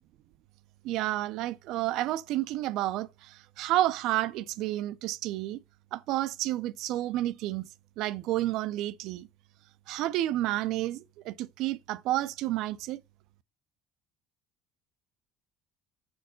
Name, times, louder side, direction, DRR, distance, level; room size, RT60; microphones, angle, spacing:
voice 1, 0.8-5.6 5.9-7.6 8.0-9.3 9.9-13.0, right 15 dB, 65° right, 0.4 m, -30 dB
4.6 x 4.4 x 5.0 m
cardioid pair, 125°, 0 cm